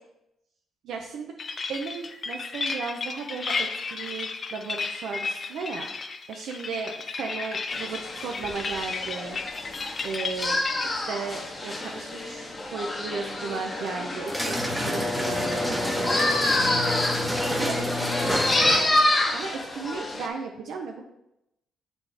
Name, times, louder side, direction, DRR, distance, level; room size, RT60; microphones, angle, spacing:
voice 1, 0.8-1.4 1.7-5.9 6.3-9.4 10.0-10.6 10.9-14.6 14.8-16.2 17.5-18.4 18.8-19.0 19.3-21.0, right 4 dB, 75° right, 1 dB, 0.5 m, -35 dB
sound 1, 1.4-10.9, left 4 dB, 40° left, 0.5 m, -33 dB
sound 2, 7.7-20.3, left 1 dB, 25° left, 1.0 m, -28 dB
sound 3, 14.3-19.0, left 1 dB, 5° right, 0.9 m, -28 dB
7.3 x 4.1 x 3.4 m, 0.86 s
cardioid pair, 90°, 0 cm